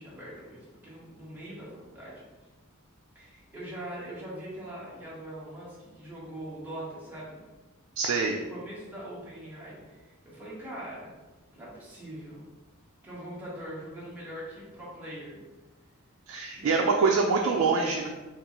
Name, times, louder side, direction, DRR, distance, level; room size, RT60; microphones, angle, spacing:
voice 1, 0.0-2.1 3.1-7.4 8.5-11.2 11.5-12.4 13.0-15.4 16.5-16.9, right 1 dB, 10° right, -8 dB, 0.9 m, -42 dB
voice 2, 8.0-8.4 16.3-18.1, right 4 dB, 70° right, 1 dB, 0.3 m, -25 dB
3.6 x 2.4 x 2.9 m, 1.2 s
head